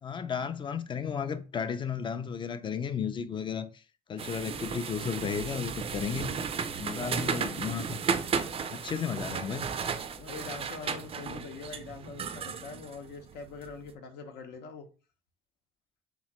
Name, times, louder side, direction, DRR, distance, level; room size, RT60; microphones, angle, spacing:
voice 1, 0.0-3.8 4.1-6.5 6.8-8.0 8.7-9.7, left 7 dB, 30° left, 0.4 m, -34 dB
sound 1, 4.2-13.7, right 6 dB, 35° right, 0.4 m, -34 dB
voice 2, 10.2-14.9, left 4 dB, 80° left, 0.8 m, -43 dB
3.6 x 3.0 x 3.0 m
cardioid pair, 110°, 17 cm